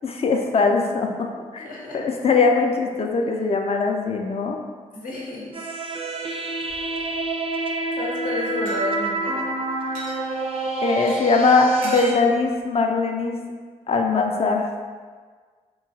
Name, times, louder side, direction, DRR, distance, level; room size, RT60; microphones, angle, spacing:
voice 1, 0.0-1.3 1.5-1.7 1.9-4.6 10.8-13.4 13.9-14.7, left 4 dB, 45° left, 3 dB, 0.4 m, -21 dB
voice 2, 1.6-2.0 3.3-3.4 4.9-5.6 6.6-6.7 8.0-9.4, left 2 dB, 70° left, -3 dB, 0.7 m, -31 dB
sound 1, 5.5-12.1, right 2 dB, 40° right, 0.4 m, -28 dB
sound 2, 6.7-7.3 8.7-8.8 9.9-10.2 11.1-11.2 11.8-12.2, right 2 dB, 85° right, 0.6 m, -36 dB
2.9 x 2.2 x 2.7 m, 1.5 s
supercardioid pair, 55°, 15 cm